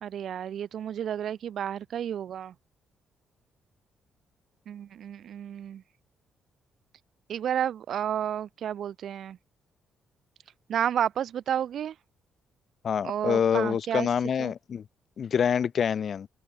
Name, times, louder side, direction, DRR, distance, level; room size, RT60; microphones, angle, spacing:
voice 1, 0.0-2.5 4.7-5.8 7.3-9.4 10.7-11.9 13.0-14.1 14.4-14.5, right 9 dB, 55° right, 0.4 m, -31 dB
voice 2, 12.8-14.8 15.2-16.3, left 7 dB, 50° left, 0.6 m, -26 dB
open air
figure-of-eight pair, 40°, 0 cm